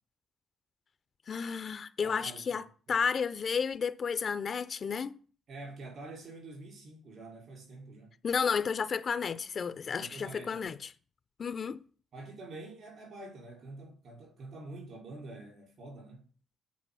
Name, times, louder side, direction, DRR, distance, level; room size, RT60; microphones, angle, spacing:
voice 1, 1.3-5.2 8.2-10.9 11.4-11.8, left 6 dB, 45° left, 0.5 m, -32 dB
voice 2, 2.0-2.6 5.5-8.1 10.0-10.7 12.1-16.2, right 2 dB, 60° right, 5.1 m, -47 dB
8.4 x 4.7 x 5.6 m
cardioid pair, 90°, 0 cm